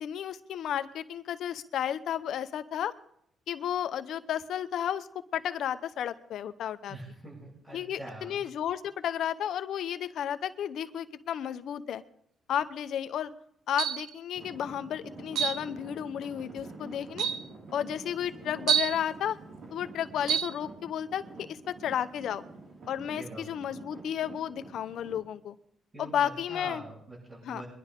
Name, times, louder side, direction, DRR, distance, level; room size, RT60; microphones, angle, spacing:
voice 1, 0.0-2.9 3.5-5.1 5.3-6.9 7.7-12.0 12.5-13.3 13.7-17.3 17.7-19.4 19.7-22.4 22.9-25.5 26.0-26.8 27.4-27.6, left 9 dB, 70° left, 11 dB, 0.9 m, -33 dB
voice 2, 6.9-8.4 23.1-23.4 25.9-27.6, right 1 dB, 25° right, -8 dB, 7.2 m, -44 dB
sound 1, 13.8-14.1 15.4-15.6 16.6-16.7 17.2-17.5 18.7-19.0 20.3-20.5, right 8 dB, 75° right, 0.7 m, -27 dB
Traffic noise roadway noise / Engine, 14.3-25.2, right 3 dB, 60° right, 5.2 m, -47 dB
23.5 x 11.0 x 3.8 m, 0.69 s
cardioid pair, 90°, 0 cm